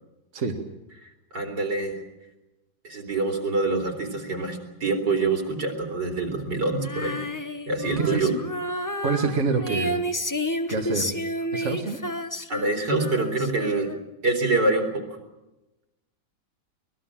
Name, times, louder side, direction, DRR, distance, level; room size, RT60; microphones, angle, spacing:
voice 1, 1.3-2.0 2.8-7.2 7.7-8.4 12.5-13.9 14.2-15.2, right 3 dB, 70° right, 2 dB, 4.4 m, -25 dB
Female singing, 6.8-14.2, equal, 15° left, 0.6 m, -31 dB
voice 2, 9.0-10.0 10.7-11.1 11.5-12.0, right 4 dB, 40° right, 2 dB, 2.0 m, -26 dB
24.0 x 19.5 x 7.4 m, 1.0 s
omnidirectional pair, 1.9 m